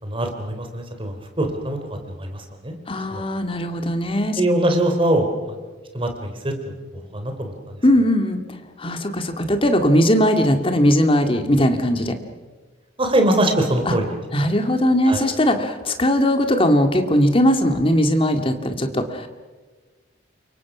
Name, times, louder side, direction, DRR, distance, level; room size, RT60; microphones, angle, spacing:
voice 1, 0.0-2.8 3.1-3.2 4.4-5.6 5.9-6.7 7.1-7.7 13.0-14.0 14.4-14.5 15.0-15.3, right 1 dB, 30° right, 5 dB, 3.6 m, -23 dB
voice 2, 2.9-4.4 7.8-12.2 13.9-14.0 14.3-19.3, equal, 30° left, 6 dB, 2.2 m, -19 dB
28.5 x 24.0 x 6.1 m, 1.3 s
head